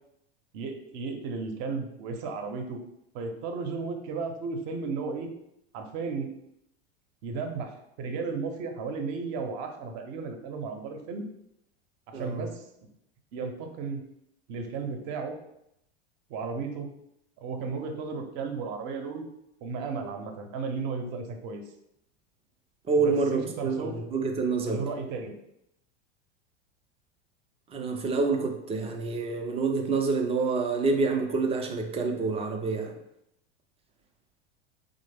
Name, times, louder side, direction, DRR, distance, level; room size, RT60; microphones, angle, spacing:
voice 1, 0.5-2.8 3.1-5.3 5.7-6.3 7.2-7.7 8.0-11.3 12.1-12.6 13.3-14.0 14.5-15.4 16.3-16.9 17.4-19.3 19.6-21.6 23.0-23.9 24.6-25.3, right 4 dB, 50° right, 4 dB, 0.7 m, -34 dB
voice 2, 12.1-12.4 22.9-24.8 27.7-32.9, right 4 dB, 20° right, 3 dB, 0.4 m, -27 dB
3.3 x 2.0 x 3.3 m, 0.79 s
hypercardioid pair, 95°, 33 cm